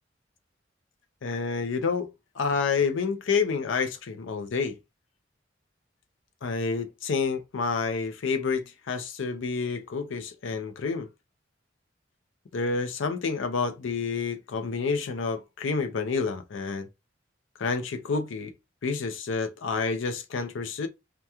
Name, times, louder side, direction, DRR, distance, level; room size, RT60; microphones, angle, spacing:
voice 1, 1.2-2.1 2.4-4.8 6.4-11.1 12.5-16.9 17.6-18.5 18.8-20.9, left 4 dB, 80° left, 0.5 m, -29 dB
2.9 x 2.2 x 2.2 m
head